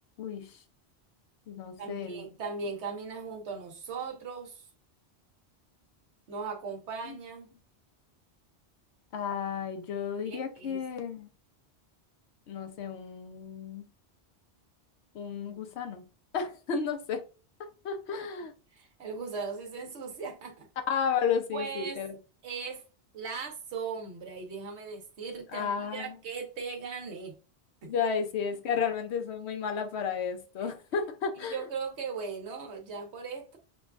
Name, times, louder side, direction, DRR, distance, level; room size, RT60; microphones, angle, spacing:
voice 1, 0.2-0.6 1.5-2.3 7.0-7.2 9.1-11.3 12.5-13.9 15.1-16.0 16.3-17.2 17.8-18.5 20.9-22.2 25.5-26.1 27.9-31.6, left 6 dB, 75° left, 1.0 m, -32 dB
voice 2, 1.8-4.6 6.3-7.5 10.2-10.8 18.2-18.3 18.7-20.7 21.5-22.0 22.4-22.8 23.1-27.3 27.8-27.9 30.6-30.7 31.5-33.6, right 5 dB, 80° right, 1.2 m, -38 dB
6.2 x 2.3 x 2.4 m
omnidirectional pair, 1.1 m